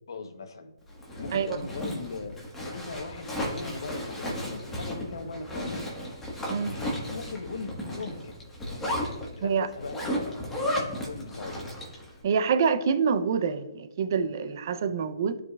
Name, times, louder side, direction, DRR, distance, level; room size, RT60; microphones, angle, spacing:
voice 1, 0.1-0.7 1.2-2.4 2.6-5.9 7.1-8.3 8.7-10.2 10.5-11.6, left 3 dB, 70° left, 8 dB, 1.0 m, -39 dB
Zipper (clothing), 0.9-12.1, left 1 dB, 10° left, 1.4 m, -34 dB
voice 2, 12.2-15.4, right 6 dB, 45° right, 10 dB, 0.6 m, -26 dB
11.5 x 4.9 x 2.4 m, 0.98 s
hypercardioid pair, 150°, 2 cm